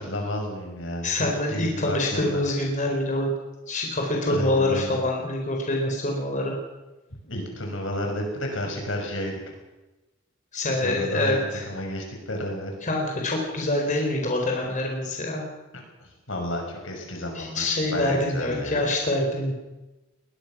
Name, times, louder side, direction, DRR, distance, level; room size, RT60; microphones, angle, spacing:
voice 1, 0.0-2.4 4.3-5.0 7.3-9.5 10.7-12.7 16.0-18.9, left 1 dB, 75° left, 2 dB, 6.0 m, -32 dB
voice 2, 1.0-3.3 3.7-6.5 10.5-11.7 12.8-15.4 17.3-19.5, left 1 dB, 40° left, 0 dB, 4.3 m, -25 dB
21.0 x 20.5 x 6.2 m, 1.1 s
head